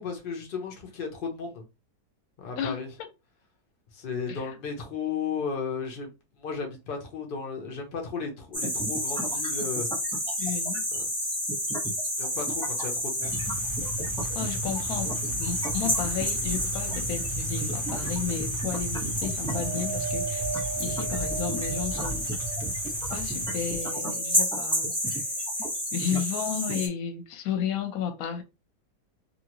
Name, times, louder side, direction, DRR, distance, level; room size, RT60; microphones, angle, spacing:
voice 1, 0.0-1.6 2.4-2.9 3.9-6.1 6.4-9.9 10.9-11.1 12.2-13.4, left 5 dB, 85° left, 0.4 m, -34 dB
sound 1, 8.5-26.9, equal, 5° left, 0.7 m, -30 dB
voice 2, 10.4-10.8 14.3-22.3 23.1-25.3 25.9-28.4, left 7 dB, 65° left, 0.9 m, -33 dB
sound 2, 13.2-23.8, right 1 dB, 90° right, 0.4 m, -36 dB
Wind, 19.5-23.0 23.6-24.6 25.4-25.5, right 5 dB, 70° right, 0.9 m, -37 dB
2.8 x 2.5 x 2.9 m
omnidirectional pair, 1.9 m